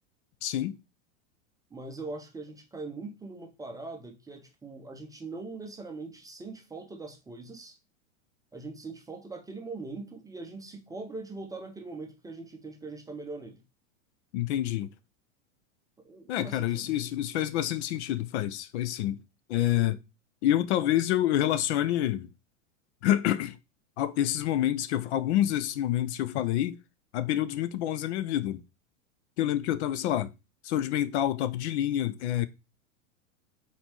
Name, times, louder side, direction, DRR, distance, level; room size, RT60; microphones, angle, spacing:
voice 1, 0.4-0.8 14.3-14.9 16.3-19.2 19.5-20.0 20.4-22.3 23.0-23.6 24.0-26.8 27.1-28.6 29.4-30.3 30.6-32.5, left 12 dB, 60° left, 0.5 m, -27 dB
voice 2, 1.7-7.8 8.5-13.6 16.0-17.0, right 3 dB, 10° right, 0.5 m, -41 dB
4.2 x 4.0 x 2.9 m
hypercardioid pair, 110°, 39 cm